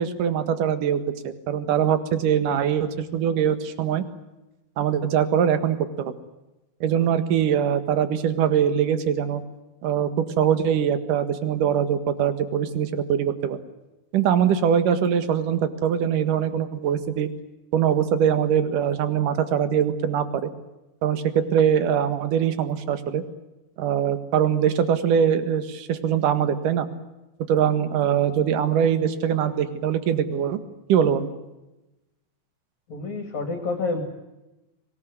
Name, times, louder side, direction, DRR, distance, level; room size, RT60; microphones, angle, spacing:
voice 1, 0.0-4.0 4.8-6.1 6.8-9.4 9.8-13.6 14.1-17.3 17.7-20.5 21.0-23.2 23.8-26.9 27.5-30.6 30.9-31.3, right 8 dB, 65° right, 11 dB, 3.1 m, -22 dB
voice 2, 32.9-34.0, left 3 dB, 50° left, 6 dB, 3.8 m, -28 dB
25.0 x 20.0 x 9.4 m, 1.0 s
omnidirectional pair, 4.3 m